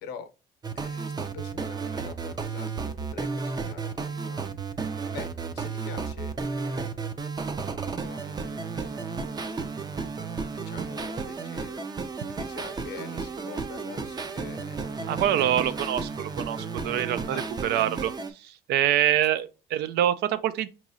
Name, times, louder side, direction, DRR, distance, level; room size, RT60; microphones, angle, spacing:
sound 1, 0.6-18.3, right 4 dB, 25° right, 0.5 m, -33 dB
voice 1, 0.7-5.3 5.5-7.2 7.7-10.0 10.5-11.9 12.2-16.0 17.3-17.4 19.1-19.2, left 6 dB, 85° left, 0.7 m, -45 dB
voice 2, 15.1-20.7, right 11 dB, 75° right, 0.5 m, -26 dB
4.6 x 3.0 x 2.6 m
cardioid pair, 110°, 17 cm